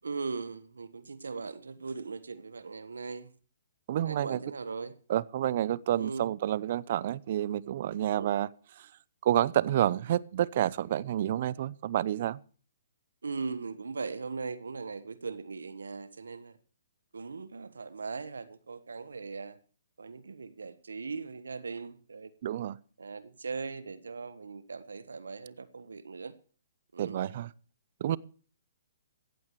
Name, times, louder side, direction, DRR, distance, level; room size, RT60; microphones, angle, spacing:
voice 1, 0.0-3.3 4.0-4.9 6.0-6.3 8.2-8.3 13.2-16.6 17.1-19.6 20.0-22.3 23.0-26.3 26.9-27.3, right 4 dB, 80° right, 1.3 m, -39 dB
voice 2, 3.9-4.4 5.1-8.5 8.8-8.9 9.2-12.4 22.4-22.8 27.0-27.5 28.0-28.2, right 11 dB, 50° right, 0.7 m, -29 dB
16.0 x 14.5 x 3.2 m
hypercardioid pair, 135°, 0 cm